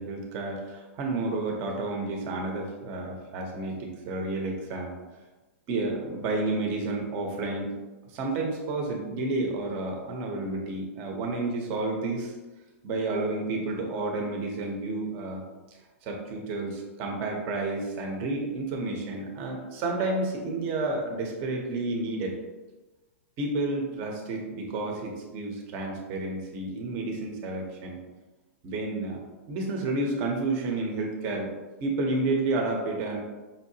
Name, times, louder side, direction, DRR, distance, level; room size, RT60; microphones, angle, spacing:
voice 1, 0.0-5.0 5.7-7.7 8.1-12.3 12.8-15.4 16.0-22.4 23.4-28.0 28.6-29.2 29.5-31.5 31.8-33.2, right 2 dB, 30° right, 1 dB, 0.8 m, -30 dB
5.6 x 2.8 x 2.8 m, 1.2 s
hypercardioid pair, 160°, 8 cm